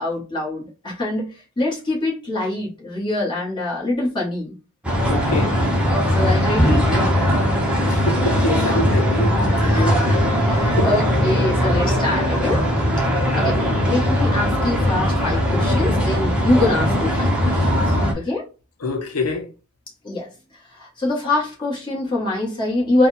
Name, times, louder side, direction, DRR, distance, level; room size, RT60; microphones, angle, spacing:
voice 1, 0.0-4.6 5.2-5.4 6.1-7.2 9.6-10.1 10.4-12.6 13.3-13.6 13.9-18.4 20.0-20.3 20.7-23.1, left 2 dB, 20° left, 1.5 m, -24 dB
sound 1, 4.8-18.1, equal, 5° right, 0.9 m, -19 dB
voice 2, 5.1-5.5 7.8-10.0 10.8-10.9 13.2-13.3 18.8-19.5, left 2 dB, 80° left, 0.7 m, -26 dB
4.1 x 2.3 x 4.2 m
head